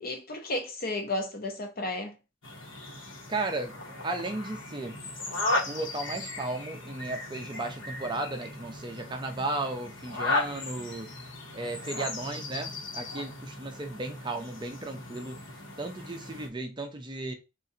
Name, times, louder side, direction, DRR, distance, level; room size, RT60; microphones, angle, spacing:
voice 1, 0.0-2.1, left 2 dB, 50° left, 0.9 m, -33 dB
sound 1, 2.4-16.5, left 2 dB, 70° left, 1.2 m, -36 dB
voice 2, 3.3-3.7 4.0-5.0 5.7-11.1 11.5-15.4 15.8-17.3, right 2 dB, 25° right, 0.5 m, -35 dB
3.7 x 2.5 x 4.1 m
head